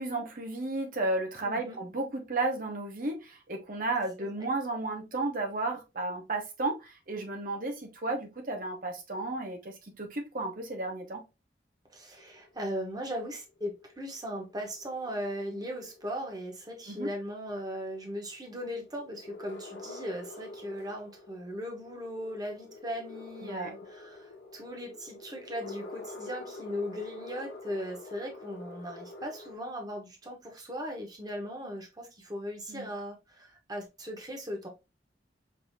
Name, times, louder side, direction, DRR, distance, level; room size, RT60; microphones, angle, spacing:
voice 1, 0.0-11.3 16.9-17.1 23.4-23.7 32.7-32.9, right 2 dB, 50° right, 1.0 m, -33 dB
voice 2, 1.4-1.8 4.2-4.5 11.9-34.7, equal, 20° right, 1.0 m, -38 dB
sound 1, 12.2-29.5, left 2 dB, 65° left, 1.0 m, -47 dB
5.5 x 2.7 x 2.6 m
head